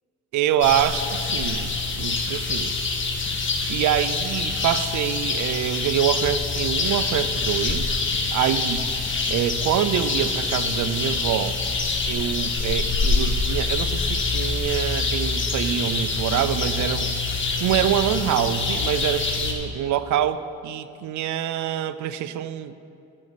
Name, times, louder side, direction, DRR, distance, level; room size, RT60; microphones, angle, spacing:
voice 1, 0.3-2.7 3.7-8.0 8.3-8.9 9.3-11.6 12.1-17.1 17.6-22.7, right 11 dB, 75° right, 14 dB, 0.6 m, -25 dB
sound 1, 0.6-19.5, left 3 dB, 40° left, 1.7 m, -25 dB
14.0 x 8.4 x 5.0 m, 2.7 s
cardioid pair, 90°, 30 cm